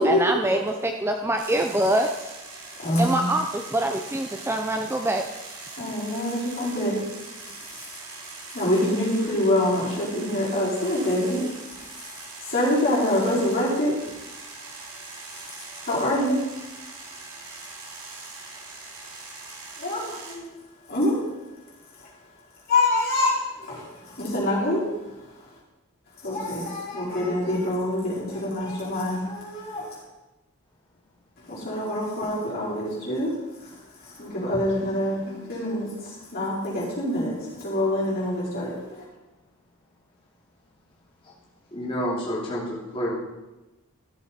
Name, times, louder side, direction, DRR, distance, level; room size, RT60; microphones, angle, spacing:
voice 1, 0.0-2.3 3.0-5.3, right 1 dB, 10° right, 4 dB, 0.4 m, -24 dB
sound 1, 1.4-20.4, right 3 dB, 80° right, 2.6 m, -41 dB
voice 2, 2.7-3.3 5.8-8.2 8.5-14.3 14.7-16.7 19.8-20.0 20.4-20.5 20.9-21.3 21.9-22.2 22.7-25.6 26.2-30.0 31.4-39.1, left 1 dB, 45° left, -7 dB, 4.7 m, -26 dB
voice 3, 41.7-43.1, equal, 25° left, -6 dB, 2.6 m, -29 dB
14.0 x 7.7 x 4.3 m, 1.1 s
head